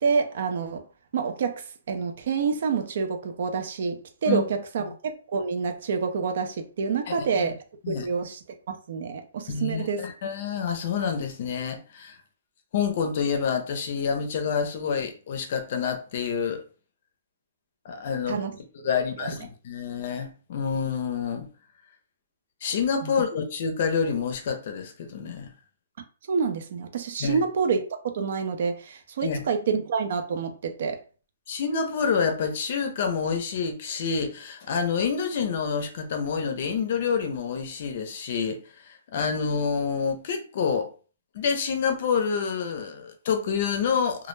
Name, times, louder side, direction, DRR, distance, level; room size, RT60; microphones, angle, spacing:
voice 1, 0.0-0.8 1.1-7.6 7.9-8.4 8.7-10.1 18.3-18.5 18.8-18.9 19.2-19.3 23.0-23.1 26.3-27.8 28.0-31.0, right 5 dB, 55° right, 0.4 m, -27 dB
voice 2, 7.1-7.5 7.8-8.1 9.5-12.2 12.7-16.6 17.8-18.4 18.8-21.5 22.6-25.5 27.2-27.5 29.2-29.5 31.5-38.6 39.1-40.9 41.3-44.3, left 6 dB, 45° left, 0.5 m, -28 dB
2.2 x 2.0 x 3.1 m
hypercardioid pair, 160°, 0 cm